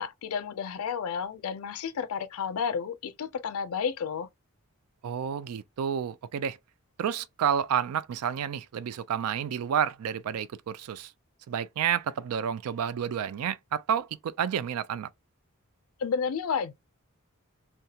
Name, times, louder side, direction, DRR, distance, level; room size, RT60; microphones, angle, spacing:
voice 1, 0.0-4.3 16.0-16.7, left 6 dB, 75° left, 0.4 m, -31 dB
voice 2, 5.0-6.6 7.0-11.1 11.5-15.1, right 8 dB, 90° right, 0.3 m, -30 dB
2.8 x 2.2 x 2.3 m
head